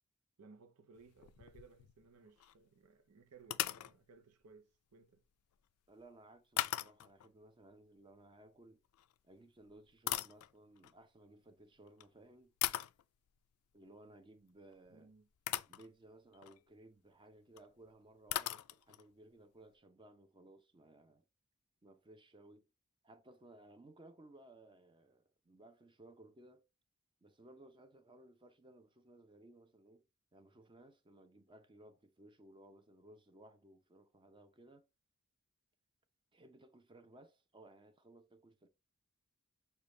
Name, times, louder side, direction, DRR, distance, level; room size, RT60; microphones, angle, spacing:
voice 1, 0.4-5.3 14.9-15.3, right 4 dB, 90° right, 0.7 m, -61 dB
sound 1, 0.9-2.1 2.4-2.5 3.4-3.9 6.6-7.3 8.9-9.1 9.7-10.9 11.9-12.0 12.6-13.0 14.9-15.0 15.5-15.9 16.3-16.6 17.6-17.7 17.9-18.0 18.3-19.1, left 13 dB, 75° left, 0.3 m, -39 dB
voice 2, 5.9-8.8 9.2-12.5 13.7-15.1 15.7-21.2 21.8-22.7 23.0-26.6 27.2-30.0 30.3-34.9 36.3-38.7, right 1 dB, 20° right, 0.6 m, -60 dB
6.6 x 2.3 x 3.1 m
head